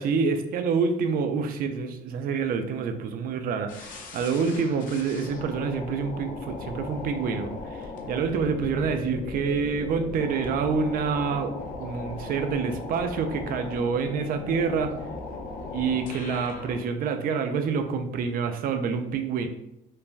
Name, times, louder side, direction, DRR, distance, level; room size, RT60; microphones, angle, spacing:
voice 1, 0.0-15.0 15.7-19.5, right 5 dB, 60° right, 8 dB, 0.4 m, -27 dB
sound 1, 3.7-16.8, left 3 dB, 55° left, 0.6 m, -38 dB
3.2 x 2.1 x 2.4 m, 0.83 s
cardioid pair, 110°, 17 cm